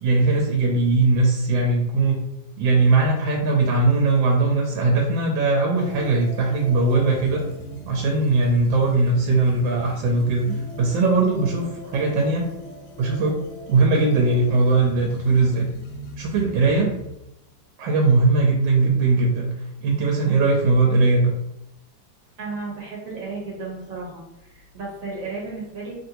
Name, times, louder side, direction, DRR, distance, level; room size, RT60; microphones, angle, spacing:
voice 1, 0.0-2.2 2.6-7.4 7.9-10.5 10.8-12.5 13.0-13.4 13.7-15.7 16.2-16.9 17.8-19.5 19.8-21.3, right 3 dB, 75° right, 0 dB, 1.2 m, -20 dB
sound 1, 5.7-17.3, equal, 70° left, 1.0 m, -40 dB
voice 2, 22.4-25.9, right 3 dB, 55° right, -4 dB, 1.0 m, -34 dB
3.1 x 2.5 x 2.7 m, 0.86 s
omnidirectional pair, 2.1 m